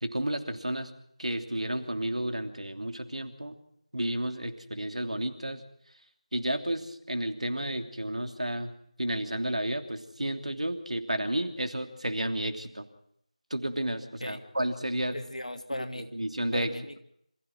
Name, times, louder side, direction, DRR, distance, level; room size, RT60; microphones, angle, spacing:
voice 1, 0.0-0.9 1.2-3.6 3.9-5.6 6.3-12.8 13.5-15.2 16.0-16.7, right 1 dB, 70° right, 7 dB, 3.1 m, -32 dB
voice 2, 15.1-16.1 16.5-17.0, left 1 dB, 70° left, 5 dB, 2.8 m, -37 dB
27.0 x 15.5 x 6.2 m, 0.72 s
figure-of-eight pair, 170°, 4 cm